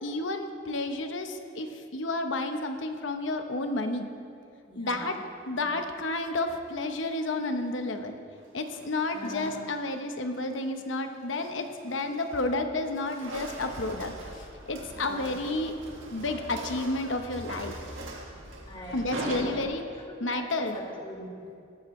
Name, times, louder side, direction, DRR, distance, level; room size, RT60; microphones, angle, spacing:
voice 1, 0.0-4.1 4.7-5.2 5.5-8.1 8.5-15.7 16.1-17.8 18.9-19.8 20.2-20.8, left 2 dB, 70° left, 6 dB, 1.0 m, -31 dB
voice 2, 4.7-5.2 5.6-5.7 9.1-9.6 15.0-15.3 18.7-19.7 20.3-21.6, equal, 25° left, -2 dB, 1.9 m, -42 dB
sound 1, 6.8-7.3 8.4-9.9 10.4-10.7 11.1-12.6 12.8-20.2, right 1 dB, 80° right, 1.8 m, -42 dB
sound 2, 13.3-19.7, right 1 dB, 65° right, 1.8 m, -47 dB
17.5 x 13.0 x 3.2 m, 2.4 s
head